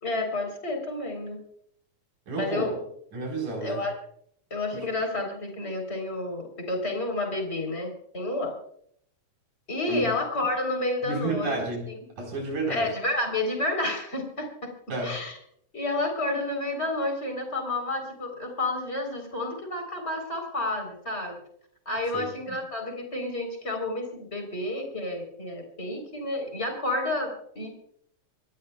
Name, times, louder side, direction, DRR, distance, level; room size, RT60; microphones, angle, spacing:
voice 1, 0.0-1.4 2.4-2.7 3.6-3.9 4.5-8.5 9.7-11.6 11.9-12.0 12.7-14.7 15.0-15.4 15.7-21.4 21.9-27.8, left 2 dB, 20° left, 3 dB, 3.8 m, -30 dB
voice 2, 2.3-2.7 3.1-3.8 4.7-4.9 9.9-10.1 11.0-11.9 12.2-12.9 14.9-15.2 22.1-22.6, right 3 dB, 80° right, 0 dB, 5.8 m, -31 dB
25.5 x 17.5 x 2.3 m, 0.67 s
omnidirectional pair, 3.5 m